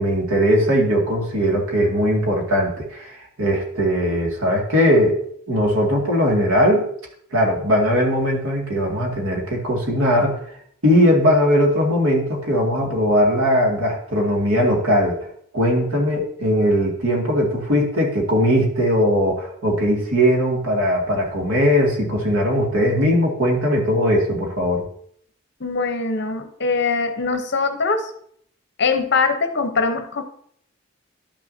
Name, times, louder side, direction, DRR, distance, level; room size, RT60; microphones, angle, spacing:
voice 1, 0.0-5.2 5.5-6.9 7.3-10.4 10.8-15.2 15.5-24.8, equal, 80° right, 0 dB, 2.2 m, -19 dB
voice 2, 25.6-28.1 28.8-30.2, left 4 dB, 50° left, 7 dB, 0.9 m, -22 dB
11.5 x 6.1 x 2.7 m, 0.65 s
head